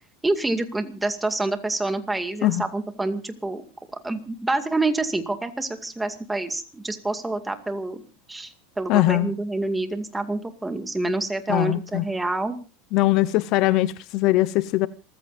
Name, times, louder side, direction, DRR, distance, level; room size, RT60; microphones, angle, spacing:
voice 1, 0.2-3.6 4.0-8.0 8.3-12.6, right 2 dB, 10° right, 2.2 m, -27 dB
voice 2, 8.9-9.3 11.5-12.1 12.9-14.9, left 16 dB, 55° left, 0.8 m, -21 dB
27.5 x 15.0 x 2.6 m
supercardioid pair, 115°, 0 cm